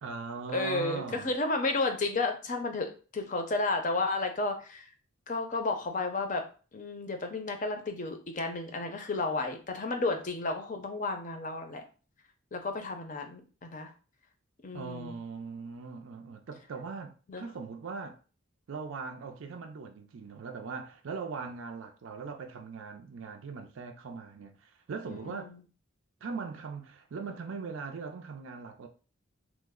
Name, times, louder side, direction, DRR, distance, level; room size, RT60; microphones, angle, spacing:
voice 1, 0.0-1.3 14.7-18.2 18.7-25.5 26.2-28.9, right 5 dB, 70° right, 0.4 m, -40 dB
voice 2, 0.5-4.9 5.3-6.4 6.7-11.8 12.5-13.9 14.6-15.1 17.3-17.4 25.1-25.4, left 3 dB, 40° left, 0.5 m, -32 dB
3.1 x 2.1 x 3.5 m
head